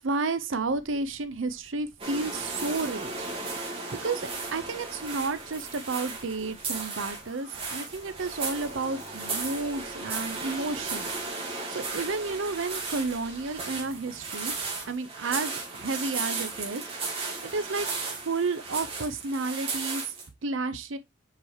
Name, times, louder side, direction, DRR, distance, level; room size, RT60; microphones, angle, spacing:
voice 1, 0.0-3.3 4.0-11.2 11.7-14.5 14.9-16.9 17.1-17.9 18.2-20.0 20.4-21.0, right 3 dB, 85° right, 0.7 m, -31 dB
sound 1, 0.6-3.6 4.2-11.3 11.8-14.9, left 1 dB, 65° left, 2.4 m, -55 dB
sound 2, 2.0-20.3, right 3 dB, 30° right, 2.3 m, -35 dB
7.4 x 4.8 x 2.8 m
head